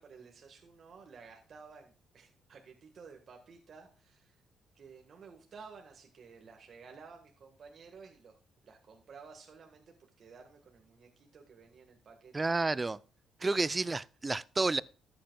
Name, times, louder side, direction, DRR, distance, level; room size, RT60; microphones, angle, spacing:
voice 1, 0.0-4.4 4.7-8.4 8.6-12.4 13.4-14.0, right 5 dB, 55° right, 1.5 m, -54 dB
voice 2, 12.3-13.0 13.4-14.8, right 3 dB, 25° right, 0.4 m, -30 dB
13.0 x 8.7 x 2.3 m
cardioid pair, 90°, 0 cm